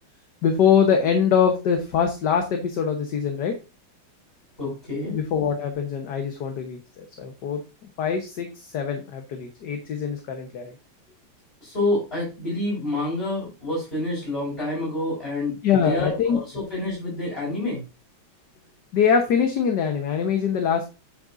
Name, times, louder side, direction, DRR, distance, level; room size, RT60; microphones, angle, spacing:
voice 1, 0.4-3.5 5.1-7.6 8.0-10.7 15.6-16.4 18.9-20.9, left 7 dB, 60° left, 5 dB, 1.6 m, -23 dB
voice 2, 4.6-5.2 11.6-15.6 15.8-17.8, left 2 dB, 25° left, -7 dB, 5.6 m, -28 dB
9.5 x 7.7 x 2.6 m, 0.29 s
omnidirectional pair, 2.3 m